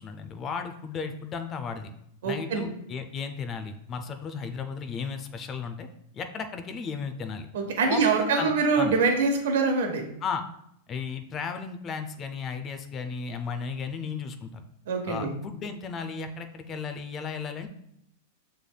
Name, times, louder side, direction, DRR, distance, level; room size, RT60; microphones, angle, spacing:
voice 1, 0.0-1.9 2.2-5.9 6.1-7.5 7.9-8.5 8.8-8.9 10.2-10.4 10.9-14.6 15.1-17.7, left 5 dB, 30° left, 8 dB, 0.4 m, -34 dB
voice 2, 2.2-2.7 7.5-10.0 14.9-15.3, right 4 dB, 75° right, 3 dB, 1.0 m, -24 dB
6.9 x 3.3 x 2.2 m, 0.75 s
hypercardioid pair, 125°, 0 cm